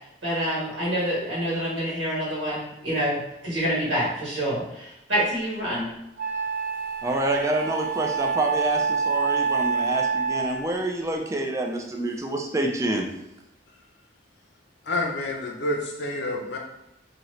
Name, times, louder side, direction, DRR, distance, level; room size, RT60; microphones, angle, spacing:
voice 1, 0.2-5.9, equal, 85° right, -6 dB, 1.3 m, -27 dB
Wind instrument woodwind instrument, 5.5-5.6 6.2-10.8, right 5 dB, 60° right, 1.0 m, -27 dB
voice 2, 7.0-13.1, right 2 dB, 15° right, 2 dB, 0.3 m, -27 dB
voice 3, 14.8-16.6, left 2 dB, 65° left, 1 dB, 0.6 m, -28 dB
2.7 x 2.5 x 3.1 m, 0.89 s
head